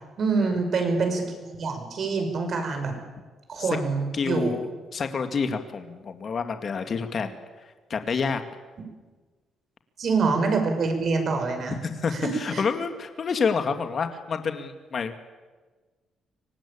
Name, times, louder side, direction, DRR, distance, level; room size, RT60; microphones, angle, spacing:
voice 1, 0.2-2.9 3.5-4.5 10.0-11.8 12.1-12.6, right 4 dB, 55° right, 6 dB, 5.9 m, -26 dB
voice 2, 4.1-7.4 7.9-8.4 11.8-15.2, left 5 dB, 50° left, 7 dB, 2.1 m, -28 dB
24.5 x 18.5 x 8.8 m, 1.3 s
cardioid pair, 90°, 0 cm